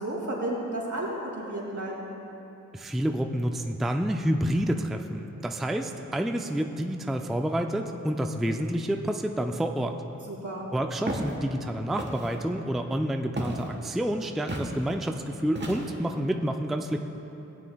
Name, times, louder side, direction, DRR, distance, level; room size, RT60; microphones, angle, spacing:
voice 1, 0.0-2.1 10.3-10.7, right 1 dB, 75° right, -4 dB, 2.3 m, -32 dB
voice 2, 2.7-9.9 10.7-17.0, right 1 dB, ahead, 4 dB, 0.4 m, -29 dB
Walk footsteps, 11.1-11.3 12.0-12.3 13.4-13.7 14.5-14.7 15.5-16.1, right 1 dB, 35° right, 1.2 m, -33 dB
16.0 x 9.5 x 2.3 m, 3.0 s
wide cardioid pair, 75°, 30 cm